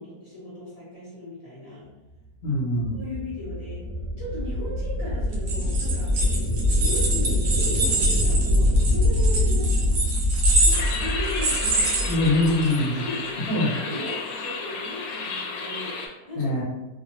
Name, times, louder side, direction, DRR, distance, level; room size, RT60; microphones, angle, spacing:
voice 1, 0.0-1.9 2.9-3.8 4.2-6.1 6.7-10.0 10.6-12.3 12.8-13.5 13.7-16.0 16.3-16.5, left 1 dB, 30° left, -8 dB, 0.9 m, -37 dB
voice 2, 2.4-3.0 12.1-13.0 13.5-13.7 16.3-16.6, left 1 dB, 60° left, -7 dB, 1.4 m, -23 dB
sound 1, 2.4-12.6, left 1 dB, 35° right, 0.7 m, -24 dB
sound 2, 5.3-12.8, right 2 dB, 70° right, 1.1 m, -26 dB
sound 3, 10.7-16.1, left 4 dB, 85° left, 1.3 m, -32 dB
3.1 x 2.3 x 2.7 m, 1.0 s
omnidirectional pair, 1.9 m